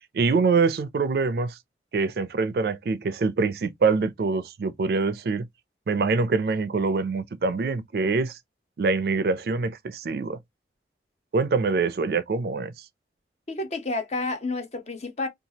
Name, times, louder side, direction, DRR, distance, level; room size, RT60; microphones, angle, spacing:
voice 1, 0.1-1.6 1.9-5.5 5.9-8.4 8.8-10.4 11.3-12.9, right 4 dB, 60° right, 0.4 m, -24 dB
voice 2, 13.5-15.3, left 2 dB, 40° left, 0.6 m, -30 dB
2.8 x 2.3 x 2.7 m
head